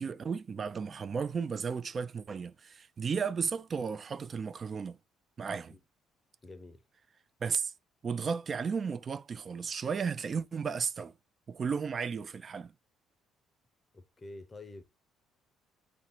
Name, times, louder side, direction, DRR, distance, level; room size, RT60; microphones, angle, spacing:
voice 1, 0.0-5.0 5.4-5.7 7.4-7.7 8.0-11.1 11.5-12.7, right 6 dB, 40° right, 0.4 m, -34 dB
voice 2, 6.4-6.8 13.9-14.8, left 2 dB, 30° left, 0.6 m, -48 dB
3.2 x 2.6 x 4.4 m
hypercardioid pair, 55°, 0 cm